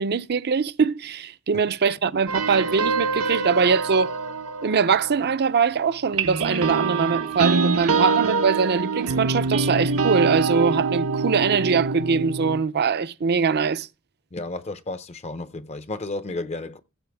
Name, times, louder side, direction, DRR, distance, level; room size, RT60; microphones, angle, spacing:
voice 1, 0.0-4.1 4.6-13.9, right 5 dB, 50° right, 0.5 m, -22 dB
sound 1, 2.3-5.7 6.1-12.6, right 4 dB, 85° right, 1.0 m, -25 dB
voice 2, 14.3-16.8, left 2 dB, 30° left, 0.6 m, -32 dB
15.5 x 7.7 x 3.4 m
head